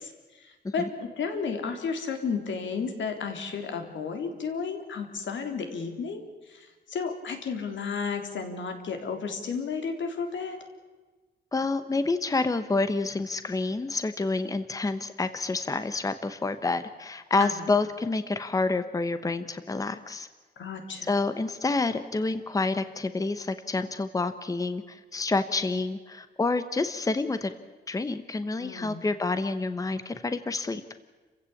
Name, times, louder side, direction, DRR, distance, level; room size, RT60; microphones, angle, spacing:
voice 1, 0.0-10.6 17.4-17.7 20.6-21.1 28.6-29.0, left 5 dB, 90° left, 5 dB, 3.7 m, -33 dB
voice 2, 11.5-20.3 21.1-27.5 27.9-30.8, left 3 dB, 20° left, 11 dB, 1.0 m, -28 dB
29.5 x 16.0 x 8.5 m, 1.3 s
wide cardioid pair, 175°, 19 cm